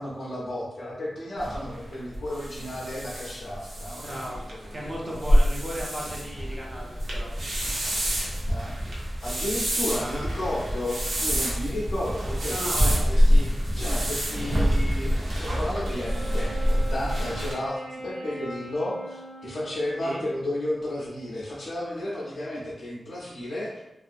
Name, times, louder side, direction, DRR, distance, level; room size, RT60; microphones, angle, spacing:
voice 1, 0.0-4.4 4.8-5.2 8.5-8.7 9.2-23.8, left 1 dB, 45° left, -7 dB, 0.5 m, -33 dB
sound 1, 1.4-17.5, equal, 85° right, 0.7 m, -26 dB
voice 2, 3.9-4.4 4.7-7.3 10.0-10.3 12.5-12.9 20.0-20.3, equal, 15° right, -4 dB, 0.6 m, -35 dB
Wind instrument woodwind instrument, 15.9-20.5, right 2 dB, 45° right, 0.9 m, -40 dB
2.6 x 2.4 x 2.5 m, 0.95 s
wide cardioid pair, 170°, 0 cm